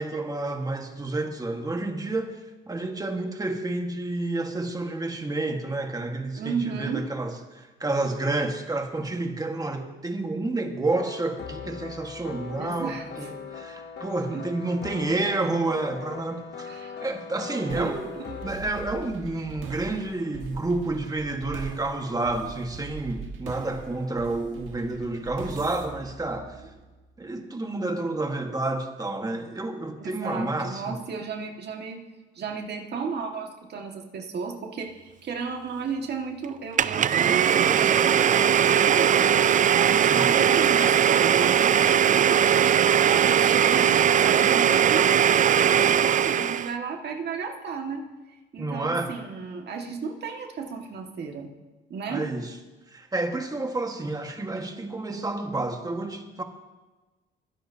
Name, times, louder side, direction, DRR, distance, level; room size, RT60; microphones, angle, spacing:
voice 1, 0.0-2.4 2.7-18.1 18.4-26.6 27.2-31.0 40.0-40.3 48.6-49.2 52.1-52.5 52.9-56.4, right 2 dB, 20° right, 4 dB, 1.5 m, -30 dB
voice 2, 6.4-7.1 12.6-13.3 14.3-14.5 16.6-17.1 17.7-18.4 30.0-32.0 32.4-42.8 43.1-48.0 48.5-51.5 51.9-52.3, right 5 dB, 55° right, 2 dB, 1.9 m, -34 dB
sound 1, 10.9-18.5, left 6 dB, 55° left, 1.0 m, -40 dB
sound 2, 17.7-27.1, right 5 dB, 80° right, 1.6 m, -42 dB
Domestic sounds home sounds, 36.8-46.7, right 9 dB, 40° right, 0.4 m, -20 dB
22.0 x 10.0 x 2.8 m, 1.2 s
cardioid pair, 90°, 20 cm